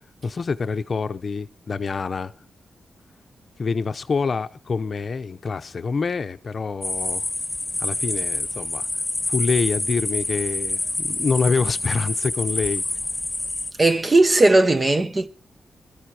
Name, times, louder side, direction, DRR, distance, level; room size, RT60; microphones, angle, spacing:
voice 1, 0.2-2.3 3.6-7.3 7.8-8.9 9.3-12.8, left 4 dB, 45° left, 0.7 m, -26 dB
sound 1, 6.8-13.7, left 2 dB, 10° left, 2.0 m, -27 dB
voice 2, 13.8-15.3, right 2 dB, 25° right, 0.8 m, -17 dB
22.0 x 13.5 x 2.9 m
wide cardioid pair, 120°, 0 cm